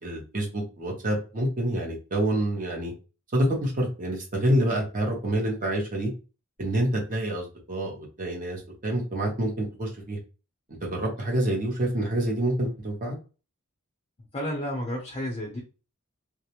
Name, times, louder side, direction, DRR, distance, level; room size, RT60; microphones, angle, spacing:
voice 1, 0.0-2.9 3.3-6.1 6.6-10.2 10.8-13.2, right 1 dB, 40° right, -2 dB, 0.8 m, -27 dB
voice 2, 14.3-15.6, equal, 30° left, -1 dB, 0.5 m, -31 dB
2.4 x 2.0 x 2.8 m, 0.34 s
head